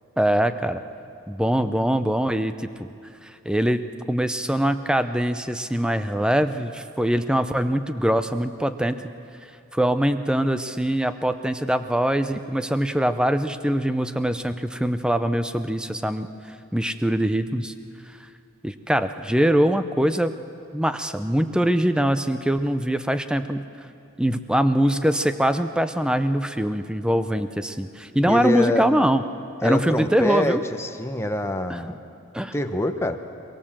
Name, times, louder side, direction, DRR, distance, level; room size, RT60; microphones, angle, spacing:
voice 1, 0.2-0.8 1.3-2.9 3.2-3.8 4.1-9.0 9.7-16.3 16.7-17.7 18.6-20.3 20.7-23.7 24.2-29.2 29.6-30.6 31.7-31.8 32.3-32.5, right 1 dB, 5° right, 10 dB, 0.6 m, -23 dB
voice 2, 28.2-28.9 29.6-32.0 32.5-33.2, left 1 dB, 10° left, 6 dB, 1.0 m, -25 dB
22.5 x 22.0 x 7.4 m, 2.5 s
head